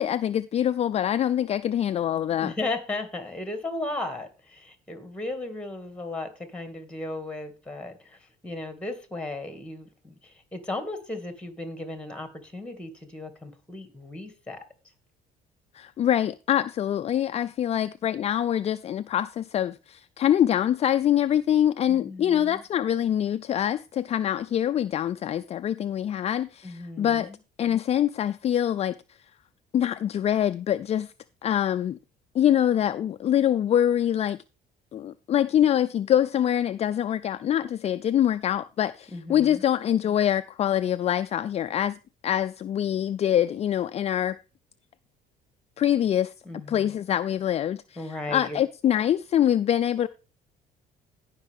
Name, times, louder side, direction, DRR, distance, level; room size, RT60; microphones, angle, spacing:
voice 1, 0.0-2.5 15.7-27.3 27.6-29.0 29.7-31.1 31.4-32.0 32.3-34.4 34.9-42.0 42.2-44.4 45.8-46.3 46.7-50.1, left 10 dB, 40° left, 0.4 m, -24 dB
voice 2, 2.4-14.6 21.9-22.6 26.6-27.4 39.1-39.6 46.5-46.9 48.0-48.6, left 2 dB, 5° left, 2.1 m, -36 dB
16.5 x 5.7 x 3.6 m
cardioid pair, 110°, 17 cm